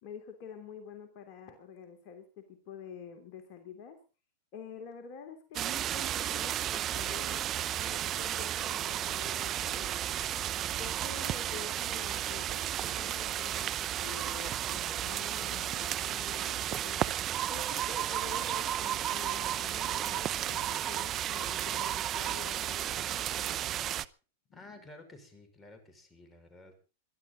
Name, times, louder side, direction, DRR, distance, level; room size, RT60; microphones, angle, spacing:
voice 1, 0.0-4.0 4.5-7.5 7.8-9.9 10.7-17.1 17.5-23.6 24.5-24.9, left 6 dB, 45° left, 5 dB, 3.1 m, -48 dB
sound 1, 5.5-24.0, right 12 dB, 35° right, 0.8 m, -33 dB
voice 2, 24.5-26.8, left 2 dB, 15° left, 7 dB, 5.8 m, -52 dB
22.5 x 12.0 x 4.1 m, 0.35 s
hypercardioid pair, 110°, 0 cm